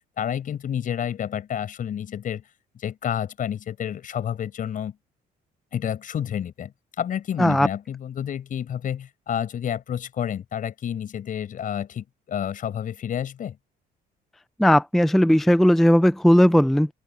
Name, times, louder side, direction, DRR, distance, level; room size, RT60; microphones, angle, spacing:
voice 1, 0.2-2.4 2.7-5.0 5.7-13.6, left 9 dB, 50° left, 6.0 m, -30 dB
voice 2, 14.6-16.9, equal, ahead, 0.4 m, -17 dB
open air
cardioid pair, 110°, 17 cm